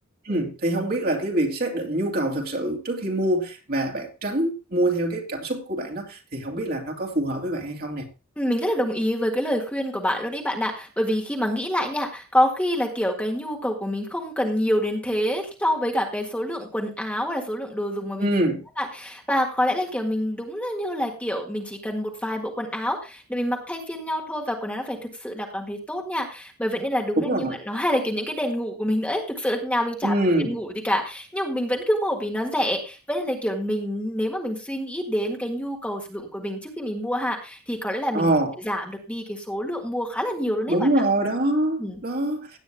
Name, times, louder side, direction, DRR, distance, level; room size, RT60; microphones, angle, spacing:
voice 1, 0.2-8.0 18.2-18.6 27.2-27.6 30.0-30.5 38.1-38.5 40.7-42.6, right 1 dB, 45° right, 2.6 m, -25 dB
voice 2, 8.4-18.3 18.8-30.1 30.4-38.3 38.6-40.9 41.8-42.0, equal, 5° left, 1.7 m, -27 dB
17.0 x 9.5 x 2.2 m
head